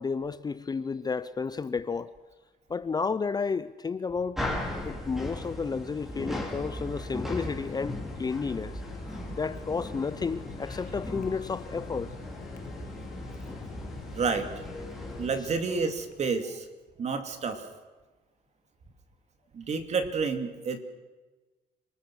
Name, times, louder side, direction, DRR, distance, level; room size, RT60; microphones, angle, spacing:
voice 1, 0.0-2.1 2.7-4.6 4.8-8.8 9.3-12.1, left 5 dB, 25° left, 0.7 m, -32 dB
sound 1, 4.4-15.3, left 1 dB, ahead, 5.2 m, -37 dB
Mechanisms, 5.4-16.2, left 9 dB, 55° left, 1.8 m, -48 dB
voice 2, 14.1-14.5 15.2-16.7 17.0-17.7 19.5-20.8, right 4 dB, 40° right, 3.0 m, -29 dB
28.0 x 20.0 x 6.4 m
cardioid pair, 110°, 17 cm